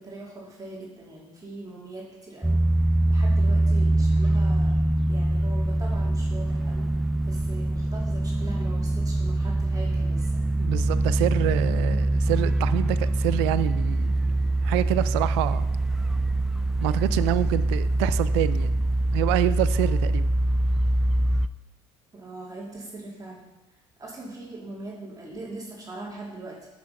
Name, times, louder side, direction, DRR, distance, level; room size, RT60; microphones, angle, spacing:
voice 1, 0.0-2.6 3.1-4.8 5.1-6.9 7.3-10.4 11.8-12.1 17.0-17.6 22.1-23.5 24.0-26.7, right 2 dB, 25° right, -4 dB, 2.8 m, -41 dB
sound 1, 2.4-21.5, right 1 dB, 5° right, 0.4 m, -24 dB
voice 2, 10.6-14.2 14.6-15.7 16.8-18.7 19.1-20.3, right 16 dB, 85° right, 15 dB, 0.4 m, -27 dB
8.6 x 6.1 x 5.3 m, 1.0 s
supercardioid pair, 75°, 14 cm